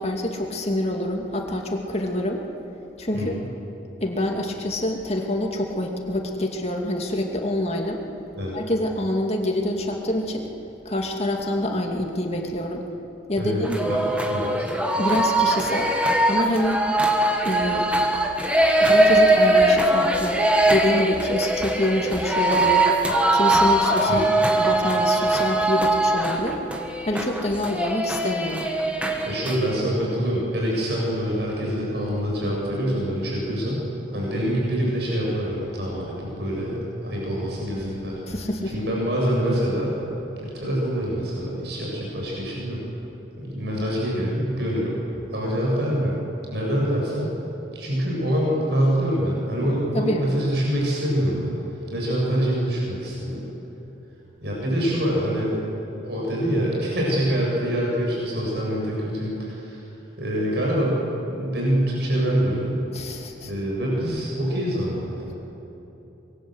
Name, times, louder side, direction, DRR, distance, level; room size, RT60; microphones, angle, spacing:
voice 1, 0.0-2.4 3.0-3.4 4.0-8.0 8.5-10.5 10.8-12.8 13.3-14.0 15.0-15.9 16.2-16.8 17.4-17.9 18.8-20.4 20.7-24.3 24.6-26.6 27.0-28.7 38.3-38.7 49.9-50.3 62.9-63.5, left 1 dB, 35° left, 2 dB, 2.5 m, -26 dB
voice 2, 3.1-3.4 8.3-8.6 13.4-14.0 14.3-14.7 24.1-24.4 29.3-33.8 34.1-38.2 38.7-40.0 40.4-42.8 43.4-45.0 45.3-46.2 46.5-47.3 47.7-51.5 51.9-53.5 54.4-55.6 56.0-59.8 60.2-61.0 61.3-62.8 63.4-65.4, equal, 60° right, -3 dB, 7.9 m, -25 dB
sound 1, 13.6-29.8, right 1 dB, 5° right, 1.9 m, -21 dB
26.0 x 23.0 x 8.1 m, 3.0 s
head